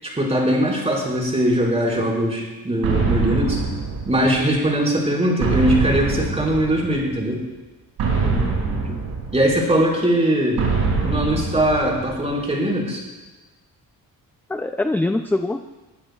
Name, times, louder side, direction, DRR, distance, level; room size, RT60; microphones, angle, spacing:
voice 1, 0.0-3.6 4.0-7.4 9.3-10.7 11.0-13.0, right 1 dB, 15° right, -4 dB, 5.0 m, -21 dB
sound 1, 2.8-4.6 5.4-7.1 8.0-9.8 10.6-12.4, right 4 dB, 80° right, 5.8 m, -24 dB
voice 2, 8.2-8.6 8.8-9.0 14.5-15.7, left 2 dB, 5° left, 7 dB, 0.3 m, -24 dB
22.0 x 14.5 x 2.4 m, 1.2 s
cardioid pair, 120°, 37 cm